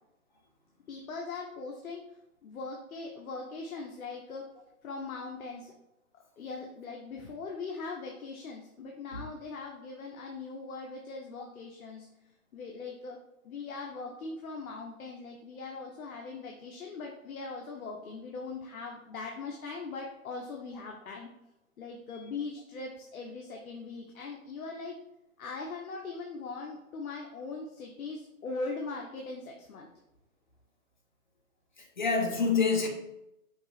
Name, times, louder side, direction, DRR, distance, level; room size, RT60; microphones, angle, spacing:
voice 1, 0.9-2.0 2.4-4.5 4.8-5.7 6.4-12.1 12.5-13.2 13.4-21.3 21.8-25.0 25.4-29.9, left 4 dB, 70° left, 1 dB, 0.9 m, -40 dB
voice 2, 31.8-32.9, left 5 dB, 35° left, 1 dB, 0.6 m, -27 dB
5.2 x 2.0 x 4.7 m, 0.86 s
hypercardioid pair, 175°, 44 cm